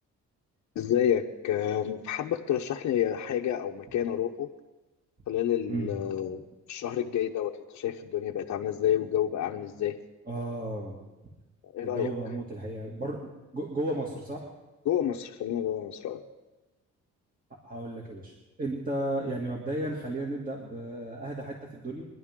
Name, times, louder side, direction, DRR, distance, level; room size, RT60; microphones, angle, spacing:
voice 1, 0.8-4.5 5.3-10.0 11.6-12.1 14.8-16.2, left 10 dB, 70° left, 1 dB, 0.8 m, -29 dB
voice 2, 10.3-11.0 11.8-14.5 17.6-18.3 18.6-22.1, right 1 dB, 30° right, -2 dB, 2.3 m, -34 dB
24.0 x 11.0 x 3.7 m, 1.1 s
cardioid pair, 90°, 30 cm